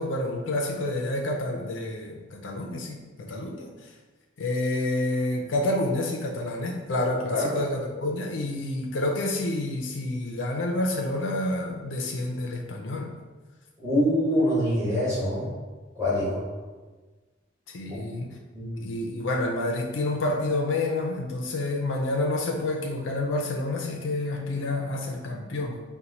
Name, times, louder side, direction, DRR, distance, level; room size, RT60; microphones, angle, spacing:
voice 1, 0.0-3.7 4.4-13.1 17.7-18.4 18.8-25.8, left 2 dB, 80° left, 1 dB, 0.5 m, -28 dB
voice 2, 13.8-15.5 15.9-16.4 17.9-18.0 18.5-18.8, equal, 15° right, -10 dB, 1.3 m, -25 dB
4.4 x 2.2 x 3.9 m, 1.3 s
head